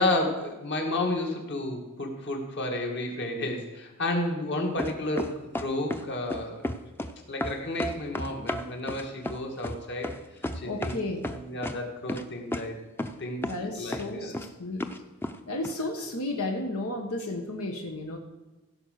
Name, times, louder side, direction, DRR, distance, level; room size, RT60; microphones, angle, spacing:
voice 1, 0.0-6.6 7.3-10.1 10.5-11.0 11.3-12.8 13.2-13.4 13.8-14.3, left 2 dB, 55° left, 2 dB, 2.0 m, -31 dB
sound 1, 4.8-6.0 6.3-7.1 7.4-11.0 11.2-11.8 12.1-12.2 12.5-12.6 13.0-13.2 13.4-13.6 13.9-14.5 14.8-15.4 15.6-15.7, left 1 dB, 10° left, 0.6 m, -32 dB
voice 2, 10.6-11.2 13.4-14.8 15.5-18.2, left 2 dB, 90° left, 2 dB, 1.4 m, -33 dB
16.0 x 5.5 x 6.6 m, 1.1 s
head